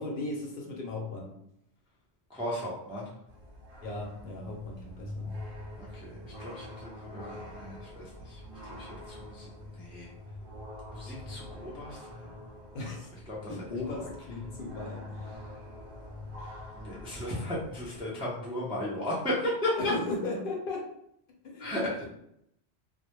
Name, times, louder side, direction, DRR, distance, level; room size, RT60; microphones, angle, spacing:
voice 1, 0.0-1.4 3.8-5.3 12.7-13.1 13.5-15.5 19.8-20.9 21.4-22.1, left 2 dB, 60° left, 0 dB, 0.7 m, -37 dB
voice 2, 2.3-3.1 5.8-10.1 10.9-12.4 13.3-13.5 14.0-14.1 16.8-19.9 21.6-22.1, left 1 dB, 10° right, -6 dB, 0.3 m, -35 dB
sound 1, 3.3-18.0, left 1 dB, 65° right, 0.8 m, -45 dB
2.1 x 2.0 x 3.0 m, 0.75 s
omnidirectional pair, 1.1 m